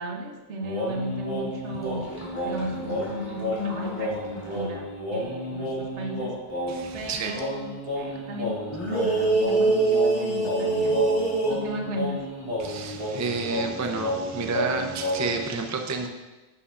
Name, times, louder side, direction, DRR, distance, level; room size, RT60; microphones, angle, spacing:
voice 1, 0.0-6.4 6.9-11.1 11.5-12.4, equal, 75° right, 2 dB, 1.2 m, -35 dB
sound 1, 0.6-6.9 7.3-15.4, right 1 dB, 25° left, 2.3 m, -28 dB
voice 2, 6.7-7.4 12.6-16.1, right 4 dB, 25° right, 4 dB, 0.4 m, -30 dB
10.5 x 7.0 x 2.5 m, 1.2 s
omnidirectional pair, 1.2 m